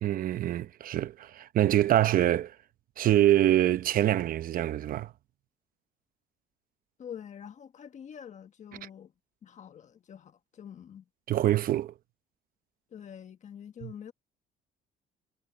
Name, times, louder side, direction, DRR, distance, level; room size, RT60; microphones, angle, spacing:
voice 1, 0.0-2.5 3.0-5.1 11.3-11.9 13.8-13.9, right 12 dB, 55° right, 0.9 m, -25 dB
voice 2, 7.0-9.1 9.4-11.0 12.9-14.1, left 8 dB, 45° left, 1.5 m, -46 dB
cardioid pair, 110°, 17 cm